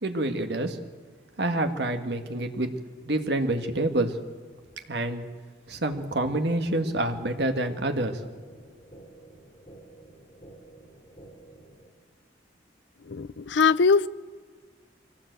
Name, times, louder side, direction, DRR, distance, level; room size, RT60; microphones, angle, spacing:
voice 1, 0.0-0.8 1.4-2.7 3.1-4.2 4.9-5.2 5.7-8.2, right 1 dB, 60° right, 1.8 m, -27 dB
sound 1, 5.9-11.9, right 2 dB, 30° left, 3.3 m, -50 dB
voice 2, 13.1-14.1, left 5 dB, 70° left, 0.6 m, -21 dB
24.0 x 17.5 x 8.1 m
head